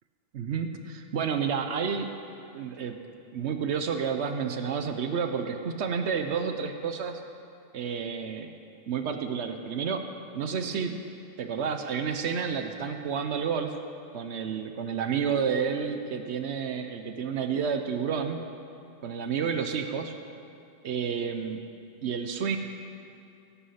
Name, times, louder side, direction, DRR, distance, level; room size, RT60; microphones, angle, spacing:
voice 1, 0.3-2.1 2.5-2.9 3.3-7.2 7.7-8.5 8.9-10.0 10.3-11.0 11.4-13.8 14.1-18.4 19.0-20.1 20.8-21.6 22.0-22.6, right 6 dB, 80° right, 7 dB, 1.0 m, -30 dB
17.0 x 8.5 x 5.7 m, 2.5 s
omnidirectional pair, 1.1 m